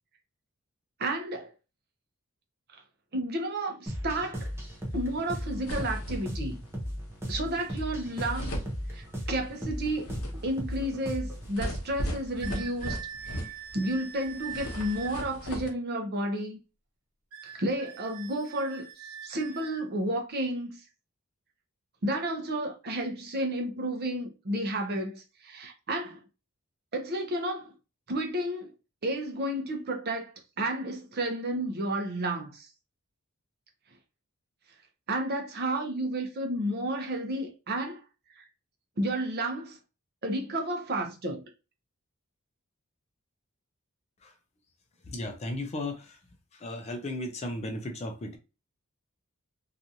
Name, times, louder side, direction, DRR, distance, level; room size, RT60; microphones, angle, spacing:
voice 1, 1.0-1.5 3.1-4.5 4.9-6.6 7.3-8.6 8.9-10.1 10.4-13.0 13.7-16.6 17.4-20.7 22.0-26.2 26.9-27.7 28.1-28.7 29.0-32.7 35.1-38.0 38.4-38.5 39.0-39.8 40.2-41.4, right 1 dB, 45° right, 0.7 m, -31 dB
sound 1, 3.9-11.5, equal, 10° right, 0.6 m, -36 dB
sound 2, 5.0-5.1 5.3-6.5 7.8-7.9 8.1-9.4 9.8-14.0 14.2-15.7, equal, 75° left, 0.7 m, -37 dB
sound 3, 12.4-15.2 17.3-19.9, right 8 dB, 80° right, 0.8 m, -43 dB
voice 2, 45.1-46.0 46.6-48.4, left 1 dB, 30° left, 0.5 m, -35 dB
2.9 x 2.4 x 2.6 m
head